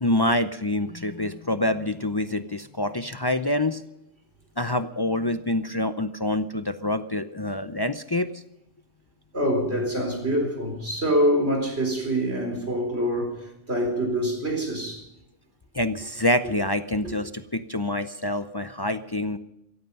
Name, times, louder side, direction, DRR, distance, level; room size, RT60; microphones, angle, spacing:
voice 1, 0.0-3.8 4.6-8.4 15.7-19.4, left 1 dB, 30° left, 0.4 m, -26 dB
voice 2, 9.3-15.1 17.0-17.1, equal, 55° right, 4.4 m, -25 dB
16.5 x 15.0 x 5.4 m
omnidirectional pair, 1.3 m